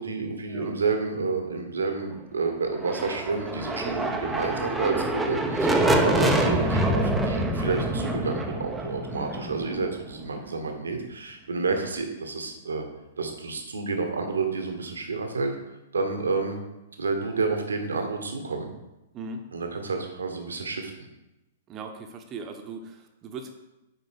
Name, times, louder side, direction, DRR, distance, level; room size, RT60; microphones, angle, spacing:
voice 1, 0.0-12.8 13.2-15.5 15.9-16.6 17.0-18.7 19.5-21.1, right 4 dB, 70° right, 5 dB, 1.3 m, -29 dB
sound 1, 2.7-10.5, right 1 dB, 10° right, 0.7 m, -26 dB
voice 2, 21.7-23.5, right 4 dB, 25° right, 5 dB, 1.0 m, -39 dB
7.8 x 5.0 x 5.1 m, 0.97 s
figure-of-eight pair, 105°, 0 cm